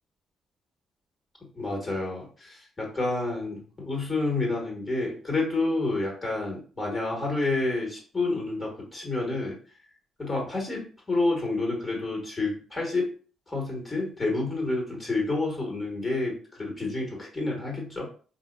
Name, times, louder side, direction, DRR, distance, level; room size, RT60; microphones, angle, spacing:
voice 1, 1.5-9.6 10.2-13.1 13.5-18.1, left 2 dB, 25° left, -1 dB, 1.9 m, -29 dB
4.9 x 2.7 x 2.7 m, 0.40 s
figure-of-eight pair, 40°, 0 cm